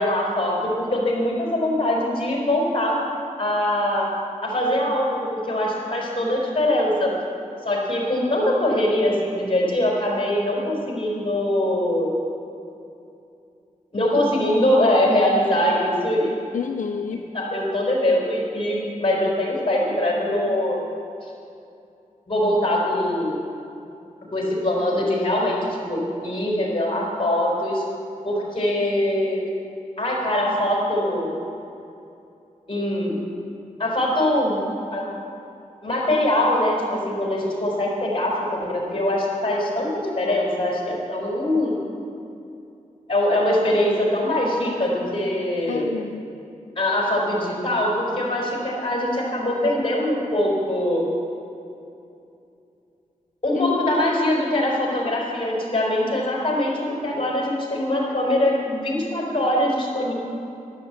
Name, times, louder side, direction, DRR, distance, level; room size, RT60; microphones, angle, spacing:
voice 1, 0.0-3.0 3.4-4.1 4.4-7.1 7.6-12.1 13.9-16.3 17.3-20.8 22.3-23.4 24.3-27.8 28.2-29.4 30.0-31.3 32.7-33.1 33.8-34.6 34.9-35.0 35.8-41.7 43.1-45.9 46.8-51.0 53.4-60.1, left 1 dB, 40° left, -2 dB, 4.5 m, -22 dB
voice 2, 16.5-17.2 45.7-46.3 53.5-53.8, left 6 dB, 70° left, 4 dB, 0.6 m, -28 dB
12.5 x 11.5 x 8.2 m, 2.7 s
wide cardioid pair, 100°, 14 cm